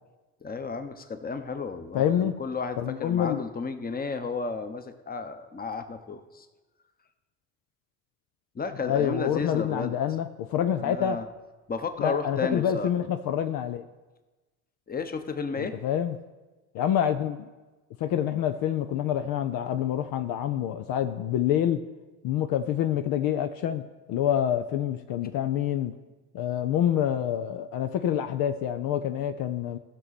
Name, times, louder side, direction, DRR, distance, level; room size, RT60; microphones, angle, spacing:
voice 1, 0.4-6.5 8.5-9.9 10.8-11.2 11.7-12.9 14.9-15.8, left 4 dB, 25° left, 8 dB, 1.0 m, -33 dB
voice 2, 1.9-2.4 2.8-3.4 8.8-11.2 12.0-13.8 15.6-16.2 16.7-17.5 18.0-21.8 22.2-23.8 24.1-25.9 26.3-29.8, left 10 dB, 65° left, 8 dB, 0.6 m, -27 dB
15.5 x 6.2 x 4.2 m, 1.2 s
hypercardioid pair, 65°, 38 cm